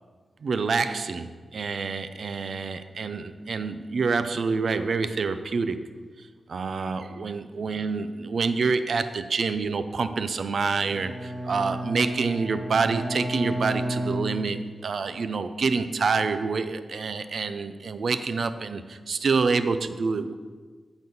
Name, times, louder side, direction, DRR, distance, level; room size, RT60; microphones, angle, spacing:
voice 1, 0.4-5.8 6.5-20.4, right 4 dB, 60° right, 11 dB, 0.4 m, -27 dB
Bowed string instrument, 10.7-15.0, right 1 dB, 10° right, 2.2 m, -33 dB
9.1 x 4.0 x 6.8 m, 1.5 s
wide cardioid pair, 155°, 0 cm